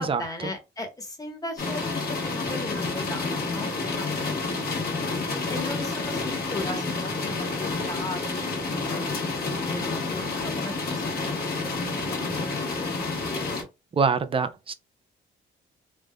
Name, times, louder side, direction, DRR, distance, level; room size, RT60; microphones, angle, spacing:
voice 1, 0.0-5.1 5.5-13.1, left 2 dB, 20° left, 1.2 m, -38 dB
sound 1, 1.6-13.6, left 3 dB, 50° left, 1.3 m, -29 dB
voice 2, 13.9-14.7, right 5 dB, 30° right, 0.5 m, -24 dB
3.5 x 2.5 x 2.2 m
cardioid pair, 90°, 20 cm